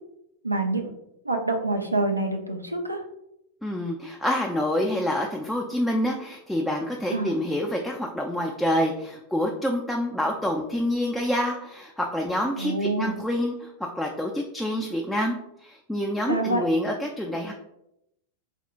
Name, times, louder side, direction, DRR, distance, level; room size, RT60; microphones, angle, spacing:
voice 1, 0.4-0.9 1.2-3.0 7.1-7.3 12.6-13.2 16.3-16.6, right 2 dB, 85° right, 3 dB, 0.4 m, -26 dB
voice 2, 3.6-17.5, left 1 dB, 5° left, 0 dB, 0.3 m, -27 dB
4.2 x 2.1 x 2.4 m, 0.83 s
figure-of-eight pair, 90°, 0 cm